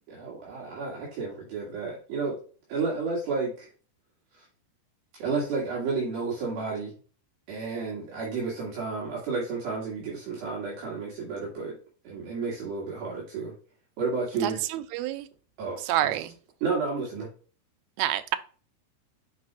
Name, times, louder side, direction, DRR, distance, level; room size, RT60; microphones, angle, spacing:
voice 1, 0.1-2.4 2.7-3.7 4.4-4.5 5.2-6.9 7.5-11.8 12.1-13.5 14.0-14.6 15.6-16.1 16.6-17.3, right 4 dB, 65° right, -5 dB, 3.7 m, -31 dB
voice 2, 14.4-15.3 15.8-16.4 18.0-18.4, right 13 dB, 80° right, 9 dB, 2.3 m, -28 dB
9.5 x 4.8 x 2.3 m, 0.38 s
omnidirectional pair, 4.8 m